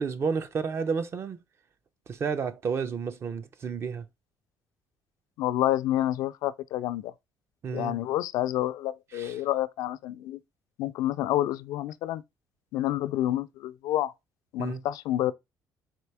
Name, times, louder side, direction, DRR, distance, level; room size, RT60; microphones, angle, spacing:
voice 1, 0.0-1.4 2.1-4.0 7.6-8.0 9.1-9.4 14.6-14.8, right 5 dB, 45° right, 0.6 m, -31 dB
voice 2, 5.4-7.1 7.7-10.4 10.8-12.2 12.7-14.1 14.5-15.3, left 13 dB, 80° left, 0.4 m, -28 dB
4.4 x 2.7 x 3.3 m
cardioid pair, 85°, 6 cm